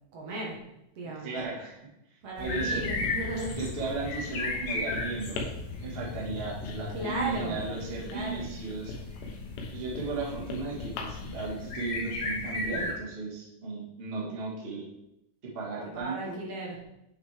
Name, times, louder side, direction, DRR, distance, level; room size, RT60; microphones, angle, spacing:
voice 1, 0.1-0.6 1.0-1.3 2.2-3.6 6.9-7.6 8.0-8.4 15.9-16.8, right 2 dB, 60° right, -2 dB, 1.9 m, -35 dB
voice 2, 1.0-1.8 2.4-2.8 3.6-5.4 5.8-8.9 9.7-14.8 15.5-16.4, right 3 dB, 35° right, -4 dB, 0.9 m, -35 dB
sound 1, 2.4-12.9, left 3 dB, 65° left, 2.4 m, -36 dB
Writing, 2.8-11.5, left 3 dB, 85° left, 2.6 m, -43 dB
8.0 x 6.0 x 3.4 m, 0.85 s
omnidirectional pair, 3.7 m